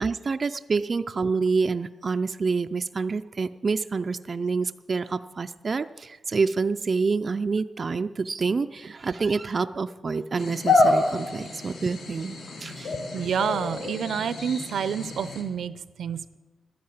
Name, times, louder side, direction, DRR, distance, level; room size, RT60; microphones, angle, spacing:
voice 1, 0.0-13.0, right 4 dB, 35° right, 10 dB, 0.4 m, -27 dB
sound 1, 10.4-15.4, left 2 dB, 80° left, 3.2 m, -27 dB
voice 2, 13.1-16.4, right 7 dB, 85° right, 15 dB, 0.6 m, -29 dB
12.5 x 10.5 x 8.6 m, 1.2 s
wide cardioid pair, 150°, 0 cm